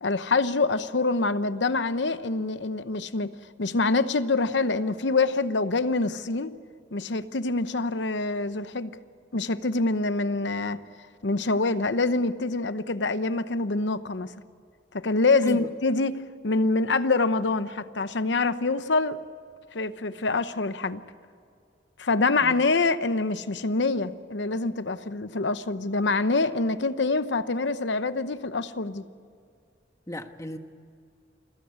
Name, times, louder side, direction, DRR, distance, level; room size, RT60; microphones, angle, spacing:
voice 1, 0.0-3.3 3.6-6.5 6.9-8.9 9.3-10.8 11.2-14.3 14.9-19.2 19.7-21.0 22.0-29.1, left 3 dB, 70° left, 13 dB, 0.9 m, -25 dB
voice 2, 30.1-30.6, left 1 dB, 15° left, 7 dB, 1.2 m, -35 dB
28.0 x 15.5 x 9.5 m, 2.3 s
head